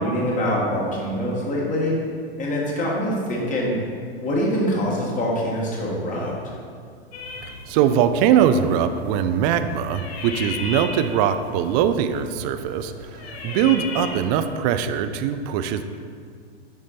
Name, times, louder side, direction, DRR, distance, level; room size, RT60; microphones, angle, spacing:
voice 1, 0.0-1.9 2.4-3.7 4.2-6.3, equal, 25° left, -4 dB, 1.5 m, -24 dB
sound 1, 7.1-14.3, left 3 dB, 75° left, 1.2 m, -36 dB
voice 2, 7.7-15.8, right 8 dB, 40° right, 9 dB, 0.4 m, -21 dB
6.8 x 5.0 x 4.1 m, 2.2 s
hypercardioid pair, 120°, 32 cm